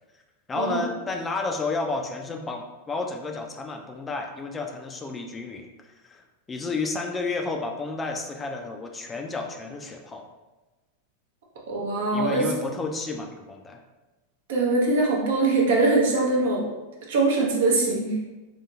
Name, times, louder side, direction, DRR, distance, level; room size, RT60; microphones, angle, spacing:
voice 1, 0.5-5.7 6.0-10.3 12.1-13.8, left 3 dB, 20° left, 3 dB, 0.3 m, -31 dB
voice 2, 11.7-12.5 14.5-16.6 17.1-18.2, right 3 dB, 75° right, -2 dB, 0.7 m, -22 dB
2.7 x 2.7 x 2.3 m, 1.1 s
hypercardioid pair, 110°, 0 cm